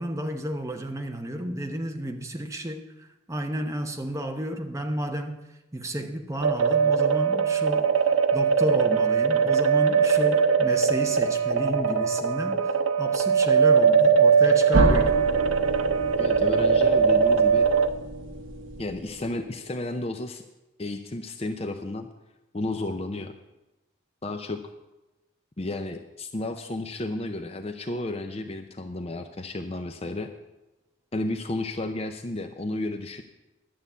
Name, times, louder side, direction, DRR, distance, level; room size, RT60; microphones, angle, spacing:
voice 1, 0.0-2.9 3.3-5.4 5.7-7.9 8.3-12.7 13.0-15.2, right 1 dB, 15° right, 0.8 m, -31 dB
sound 1, 6.4-17.9, right 6 dB, 90° right, 0.8 m, -21 dB
sound 2, 14.7-19.5, right 1 dB, 75° right, 1.2 m, -29 dB
voice 2, 16.2-17.7 18.8-20.4 20.8-22.1 22.5-23.3 24.2-24.6 25.6-30.3 31.1-33.2, left 2 dB, 30° left, 0.5 m, -32 dB
11.5 x 7.0 x 8.1 m
head